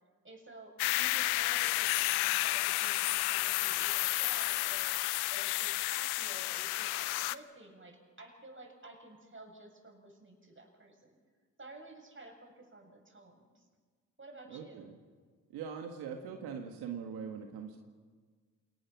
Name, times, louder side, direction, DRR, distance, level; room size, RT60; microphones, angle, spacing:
voice 1, 0.2-4.9 5.3-11.2 11.6-13.7 14.2-14.9, right 2 dB, 30° right, 3 dB, 7.7 m, -52 dB
sound 1, 0.8-7.4, left 19 dB, 85° left, 0.7 m, -31 dB
voice 2, 14.5-15.0 15.5-17.8, right 7 dB, 80° right, 3 dB, 1.8 m, -42 dB
28.0 x 19.5 x 6.2 m, 1.5 s
hypercardioid pair, 40°, 38 cm